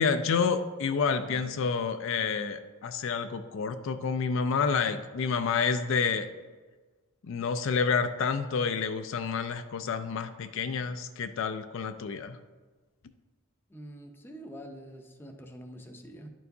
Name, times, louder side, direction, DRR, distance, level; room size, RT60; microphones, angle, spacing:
voice 1, 0.0-6.3 7.2-12.4, left 5 dB, 65° left, 9 dB, 0.4 m, -29 dB
voice 2, 13.7-16.3, equal, 10° left, 3 dB, 0.5 m, -45 dB
11.0 x 4.5 x 2.7 m, 1.4 s
head